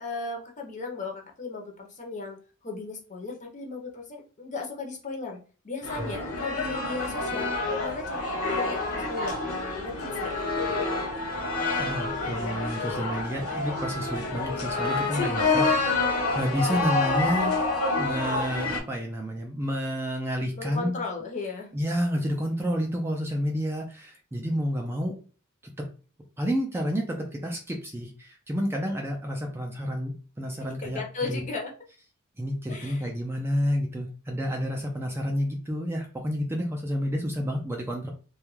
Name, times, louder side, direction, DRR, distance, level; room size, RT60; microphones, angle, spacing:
voice 1, 0.0-2.4 2.6-5.4 5.6-9.4 9.8-10.5 14.9-15.7 16.7-16.8 20.5-21.7 30.6-31.7 32.7-33.0, left 3 dB, 35° left, 1 dB, 0.7 m, -36 dB
sound 1, 5.8-18.8, left 3 dB, 65° left, 0.8 m, -28 dB
voice 2, 11.8-15.7 16.1-17.6 18.0-21.0 21.7-25.1 25.8-25.9 26.4-31.4 32.4-38.1, equal, 10° right, 1 dB, 0.4 m, -30 dB
2.3 x 2.2 x 3.1 m, 0.37 s
head